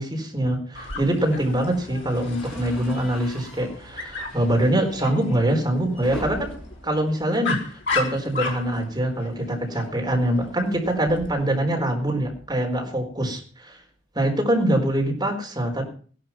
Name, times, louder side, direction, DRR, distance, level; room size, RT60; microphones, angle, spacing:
voice 1, 0.0-6.5 6.8-7.6 7.9-13.8 14.1-15.8, right 1 dB, 20° right, 1 dB, 4.2 m, -24 dB
Dog, 0.7-11.3, left 4 dB, 60° left, 3.8 m, -35 dB
sound 1, 2.2-8.2 8.5-8.7 9.0-9.1 10.3-12.7, equal, 5° left, 7.7 m, -42 dB
16.5 x 11.5 x 5.9 m, 0.43 s
head